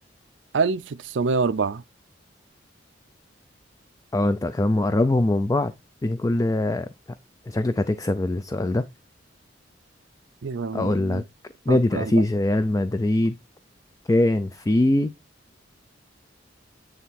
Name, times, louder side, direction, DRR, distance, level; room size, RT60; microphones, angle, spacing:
voice 1, 0.5-1.8 10.4-11.2 11.7-12.2, right 4 dB, 75° right, 0.5 m, -26 dB
voice 2, 4.1-5.7 6.0-6.9 7.5-8.8 10.7-11.2 11.7-13.3 14.1-15.1, left 1 dB, 20° left, 0.3 m, -22 dB
9.2 x 3.3 x 4.2 m
head